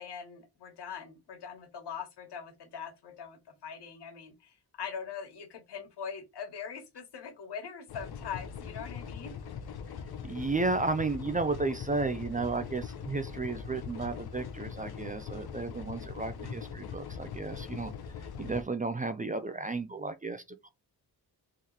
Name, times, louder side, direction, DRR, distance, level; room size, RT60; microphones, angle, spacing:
voice 1, 0.0-9.4, left 7 dB, 80° left, 1.6 m, -42 dB
sound 1, 7.9-18.6, left 7 dB, 65° left, 0.8 m, -41 dB
voice 2, 10.2-17.9 18.4-20.7, right 3 dB, 20° right, 0.4 m, -33 dB
3.9 x 3.1 x 4.1 m
wide cardioid pair, 150°, 40 cm